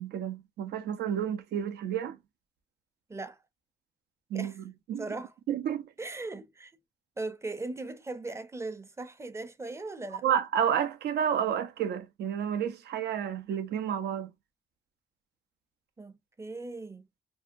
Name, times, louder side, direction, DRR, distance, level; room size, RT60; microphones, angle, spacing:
voice 1, 0.0-2.2 4.3-4.5 4.9-5.1 5.5-5.9 10.2-14.3, right 9 dB, 85° right, 0.5 m, -30 dB
voice 2, 5.0-5.3 6.0-6.7 7.2-10.2 16.0-17.1, right 2 dB, 15° right, 0.5 m, -38 dB
2.7 x 2.2 x 2.5 m
cardioid pair, 85°, 17 cm